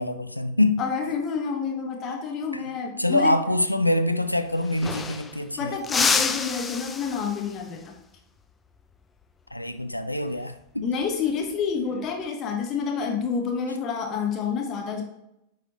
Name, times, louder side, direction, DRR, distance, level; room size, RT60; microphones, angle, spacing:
voice 1, 0.0-0.8 2.5-2.6 3.0-5.8 9.5-10.9, left 1 dB, 85° left, 10 dB, 0.5 m, -25 dB
voice 2, 0.8-3.4 5.6-7.9 10.8-15.0, left 6 dB, 30° left, 2 dB, 1.1 m, -28 dB
sound 1, 4.2-4.3 4.5-5.5 5.8-7.6 10.1-10.4 11.8-12.3, left 5 dB, 15° left, 0.5 m, -28 dB
9.3 x 4.8 x 2.9 m, 0.83 s
figure-of-eight pair, 90°, 0 cm